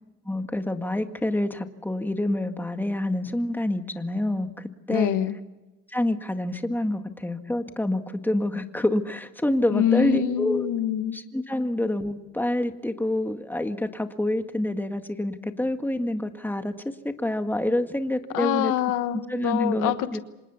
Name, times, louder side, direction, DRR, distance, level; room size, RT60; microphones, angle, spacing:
voice 1, 0.3-5.2 5.9-10.7 11.1-16.7 17.0-18.7 19.3-20.2, left 1 dB, 5° left, 7 dB, 1.9 m, -27 dB
voice 2, 4.9-5.4 9.7-11.2 18.3-20.2, left 10 dB, 90° left, 11 dB, 1.3 m, -25 dB
26.5 x 20.0 x 7.2 m, 1.1 s
cardioid pair, 90°, 30 cm